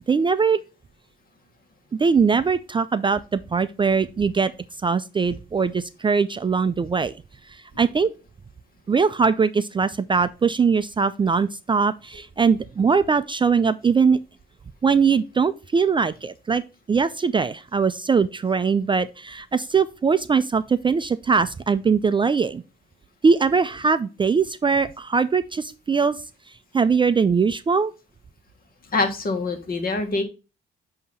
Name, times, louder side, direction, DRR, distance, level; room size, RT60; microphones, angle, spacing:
voice 1, 0.1-0.6 2.0-4.5 4.8-7.1 7.8-8.1 8.9-14.2 14.8-16.6 16.9-22.6 23.2-26.2 26.7-27.9, right 5 dB, 25° right, 12 dB, 0.4 m, -21 dB
voice 2, 28.9-30.2, left 3 dB, 50° left, 7 dB, 1.5 m, -24 dB
8.3 x 2.9 x 5.3 m, 0.30 s
cardioid pair, 90°, 20 cm